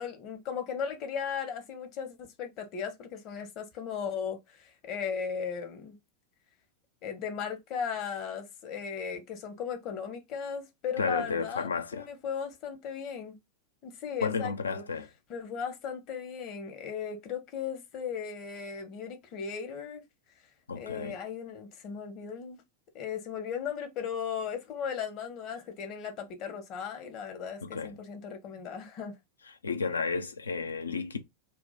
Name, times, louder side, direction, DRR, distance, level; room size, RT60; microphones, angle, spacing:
voice 1, 0.0-6.0 7.0-13.4 13.8-14.8 15.3-20.0 20.7-22.6 22.9-29.1, left 7 dB, 40° left, 0.9 m, -37 dB
voice 2, 11.0-12.1 14.2-15.1 20.7-21.2 27.6-27.9 29.6-31.2, left 5 dB, 75° left, 0.5 m, -32 dB
2.7 x 2.3 x 4.0 m
figure-of-eight pair, 90°, 0 cm